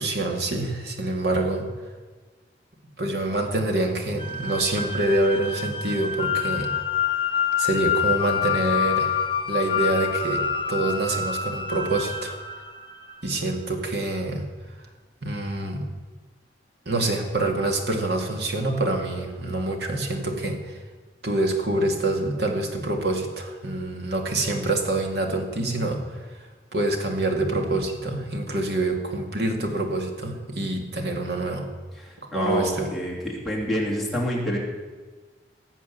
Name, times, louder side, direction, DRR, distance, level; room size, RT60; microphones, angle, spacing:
voice 1, 0.0-1.6 3.0-6.7 7.6-9.2 9.5-10.4 10.7-12.4 13.2-14.5 15.2-15.9 16.9-20.8 21.2-26.2 26.7-31.7 32.3-32.9, right 2 dB, 70° right, 3 dB, 2.2 m, -26 dB
sound 1, 4.2-13.4, left 7 dB, 30° left, 0.9 m, -27 dB
voice 2, 32.0-34.6, equal, ahead, -5 dB, 2.9 m, -28 dB
18.0 x 7.4 x 7.0 m, 1.4 s
head